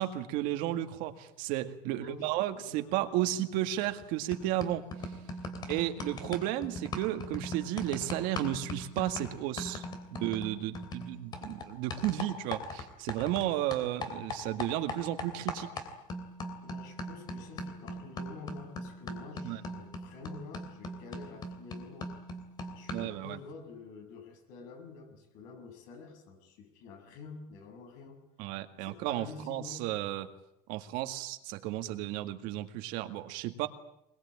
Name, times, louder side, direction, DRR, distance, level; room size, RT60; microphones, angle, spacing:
voice 1, 0.0-4.9 5.7-9.8 10.2-15.7 19.4-19.6 22.9-23.4 28.4-30.3 30.7-33.7, right 13 dB, 70° right, 8 dB, 1.9 m, -33 dB
voice 2, 1.8-3.0 5.4-5.9 16.6-22.1 22.7-28.2 28.8-29.8, left 4 dB, 70° left, 5 dB, 6.6 m, -48 dB
sound 1, 3.8-4.0 4.3-13.5 13.7-23.2, left 1 dB, 30° left, 3.1 m, -40 dB
23.0 x 22.0 x 8.7 m, 0.79 s
cardioid pair, 180°, 15 cm